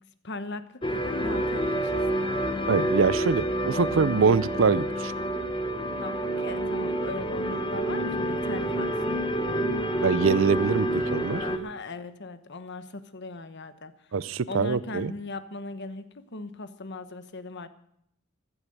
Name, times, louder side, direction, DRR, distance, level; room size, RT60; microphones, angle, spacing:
voice 1, 0.2-2.4 6.0-9.2 11.4-13.9 14.5-17.7, left 3 dB, 55° left, 11 dB, 1.1 m, -39 dB
sound 1, 0.8-11.6, right 1 dB, 25° left, 1.2 m, -28 dB
voice 2, 2.7-5.1 10.0-11.4 14.1-15.1, right 5 dB, 65° right, 18 dB, 0.5 m, -24 dB
15.5 x 11.5 x 6.6 m, 0.73 s
head